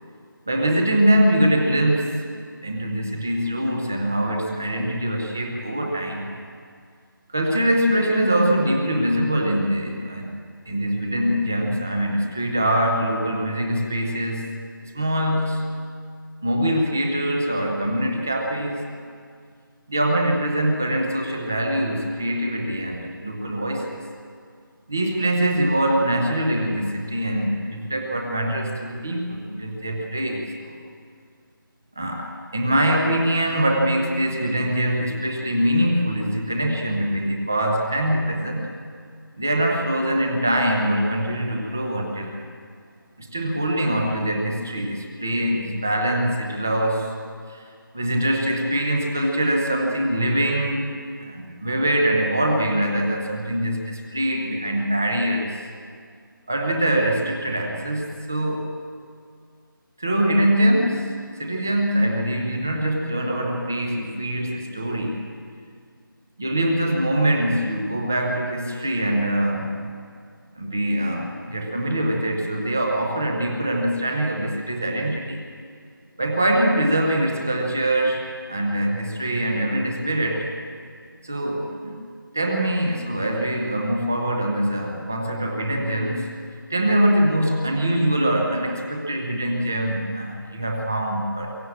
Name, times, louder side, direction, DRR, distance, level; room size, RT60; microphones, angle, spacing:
voice 1, 0.5-2.2 2.6-6.3 7.3-10.3 10.7-15.8 16.4-18.9 19.9-24.0 24.9-30.8 32.0-38.6 39.4-42.5 43.2-47.2 47.5-47.7 47.9-50.9 51.2-55.6 56.5-58.7 60.0-65.2 66.4-69.8 70.5-75.4 76.2-80.5 81.2-81.9 82.3-86.4 86.7-91.6, right 1 dB, 5° right, 2 dB, 0.6 m, -23 dB
22.5 x 16.0 x 8.7 m, 2.2 s
figure-of-eight pair, 175°, 12 cm